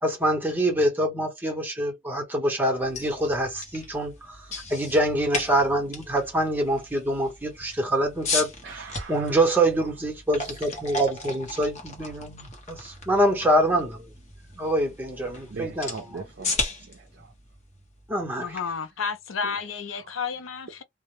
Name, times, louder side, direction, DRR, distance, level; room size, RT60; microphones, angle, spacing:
voice 1, 0.0-14.1 14.6-16.2 18.1-18.6, right 1 dB, 10° right, 0.8 m, -25 dB
sound 1, 2.7-18.7, left 3 dB, 35° left, 0.8 m, -36 dB
voice 2, 8.6-9.5 10.4-10.6 15.5-17.3 18.5-18.6 19.4-19.6 19.9-20.2, right 4 dB, 55° right, 0.4 m, -41 dB
voice 3, 18.4-20.8, left 6 dB, 80° left, 0.5 m, -31 dB
2.1 x 2.0 x 3.0 m
head